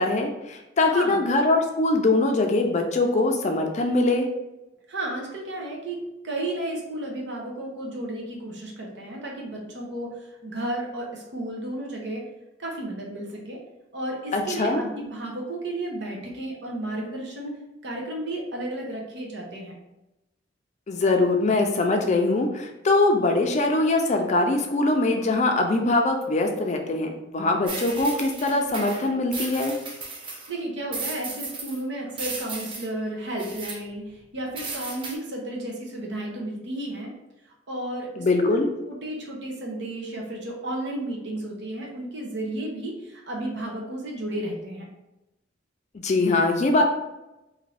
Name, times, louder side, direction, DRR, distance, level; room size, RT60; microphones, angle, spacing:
voice 1, 0.0-4.3 14.3-14.8 20.9-29.8 38.2-38.7 46.0-46.8, left 2 dB, 40° left, 3 dB, 0.4 m, -22 dB
voice 2, 0.8-1.2 4.9-12.3 12.6-13.6 13.9-19.8 30.5-37.1 37.7-38.6 38.9-44.9, right 1 dB, 70° right, -1 dB, 0.8 m, -33 dB
sound 1, 27.7-30.5 30.9-31.8 32.2-32.9 33.4-33.8 34.6-35.2, right 3 dB, 30° right, 0.5 m, -35 dB
2.7 x 2.5 x 3.2 m, 0.94 s
head